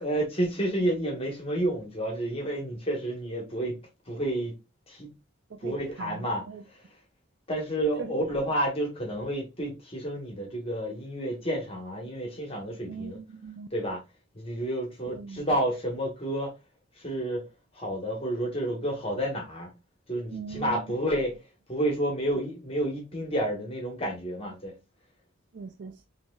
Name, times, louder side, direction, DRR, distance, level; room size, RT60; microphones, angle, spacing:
voice 1, 0.0-3.7 4.1-4.5 4.9-5.1 5.6-6.8 7.5-13.2 13.7-14.0 14.3-16.5 17.0-17.4 17.7-19.7 20.1-21.4 21.7-24.7, right 1 dB, 30° left, 1.2 m, -30 dB
voice 2, 5.5-6.6 8.0-8.2 12.9-13.7 15.0-15.5 20.3-20.8 25.5-26.1, right 5 dB, 60° right, 0.3 m, -40 dB
5.7 x 2.7 x 2.2 m
head